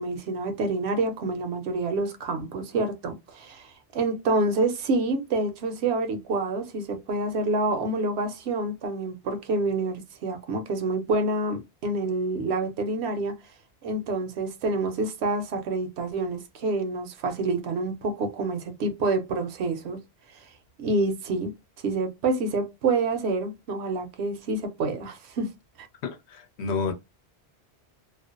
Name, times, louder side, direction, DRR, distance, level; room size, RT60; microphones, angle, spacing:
voice 1, 0.0-13.3 13.8-20.0 20.8-21.5 21.8-25.5, right 3 dB, 75° right, 0.9 m, -27 dB
voice 2, 26.0-26.9, left 5 dB, 80° left, 0.9 m, -30 dB
2.4 x 2.1 x 2.4 m
omnidirectional pair, 1.1 m